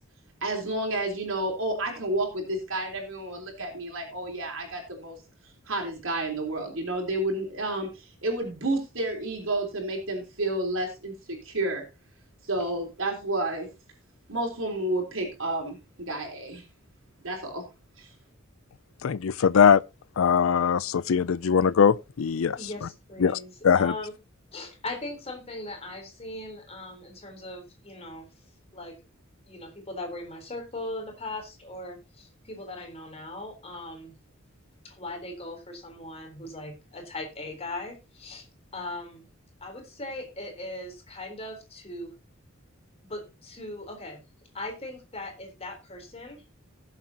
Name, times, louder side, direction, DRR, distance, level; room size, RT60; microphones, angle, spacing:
voice 1, 0.4-5.2 5.7-11.8 12.4-13.7 14.3-16.6 17.2-17.6 18.0-18.1, right 1 dB, 70° right, 3.6 m, -30 dB
voice 2, 19.0-19.8 20.2-22.9 23.2-23.4 23.6-23.9, left 7 dB, 80° left, 0.4 m, -21 dB
voice 3, 22.6-24.1 24.5-28.3 28.7-29.0 29.5-34.2 34.8-38.5 38.7-39.3 39.6-42.1 43.0-44.2 44.5-46.4, left 2 dB, 30° left, 3.7 m, -39 dB
19.0 x 7.5 x 2.9 m
head